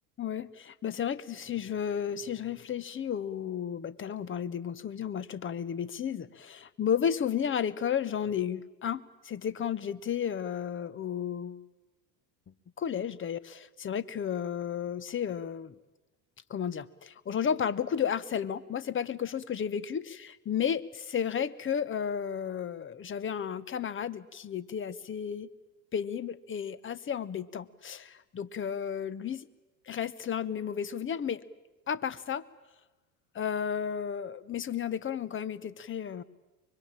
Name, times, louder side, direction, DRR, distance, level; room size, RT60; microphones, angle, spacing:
voice 1, 0.2-11.6 12.8-15.7 16.5-25.5 25.9-29.5 29.9-31.4 31.9-32.4 33.3-36.2, left 8 dB, 25° left, 19 dB, 1.0 m, -33 dB
24.0 x 22.5 x 8.8 m, 1.1 s
hypercardioid pair, 80°, 50 cm